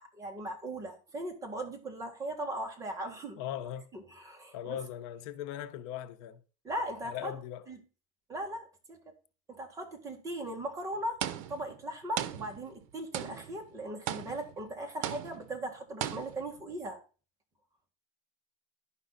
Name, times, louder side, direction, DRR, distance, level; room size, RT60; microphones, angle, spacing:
voice 1, 0.0-3.4 3.9-4.8 6.6-7.3 7.7-7.8 8.3-9.1 9.5-17.0, right 1 dB, 20° right, 1.6 m, -39 dB
voice 2, 3.4-3.9 4.5-6.4 7.0-7.7, left 10 dB, 65° left, 0.8 m, -39 dB
sound 1, 11.2-11.8 12.2-12.9 13.1-13.6 14.1-14.6 15.0-15.6 16.0-16.6, right 11 dB, 80° right, 0.7 m, -37 dB
11.0 x 5.4 x 3.9 m
cardioid pair, 155°, 17 cm